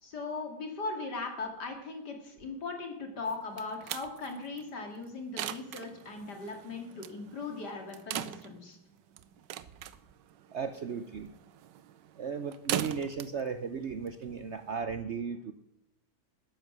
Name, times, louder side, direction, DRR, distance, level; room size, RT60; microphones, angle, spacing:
voice 1, 0.0-8.8, left 3 dB, 70° left, 4 dB, 3.1 m, -39 dB
sound 1, 3.3-14.7, right 11 dB, 85° right, 1.4 m, -41 dB
voice 2, 10.5-11.3 12.2-15.5, right 6 dB, 55° right, 10 dB, 0.8 m, -36 dB
13.0 x 10.5 x 6.2 m, 0.81 s
omnidirectional pair, 1.9 m